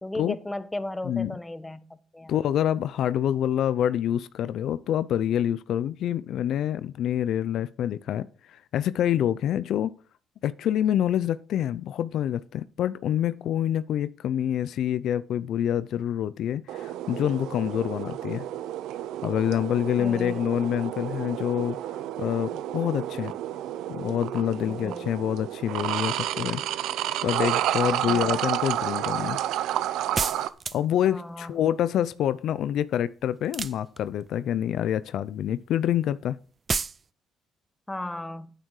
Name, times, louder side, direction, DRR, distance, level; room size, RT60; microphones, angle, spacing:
voice 1, 0.0-2.4 20.0-20.4 24.7-25.1 28.1-28.3 31.0-31.6 37.9-38.5, left 1 dB, 10° left, 1.2 m, -35 dB
voice 2, 1.0-1.4 2.3-9.9 10.4-18.4 19.2-21.8 22.2-23.3 23.9-26.6 27.2-29.4 30.7-36.4, left 10 dB, 70° left, 0.5 m, -26 dB
sound 1, 16.7-30.5, right 12 dB, 80° right, 0.6 m, -30 dB
sound 2, 30.2-31.0 33.4-34.3 36.7-37.0, right 5 dB, 40° right, 0.4 m, -29 dB
9.0 x 8.9 x 4.8 m
supercardioid pair, 75°, 0 cm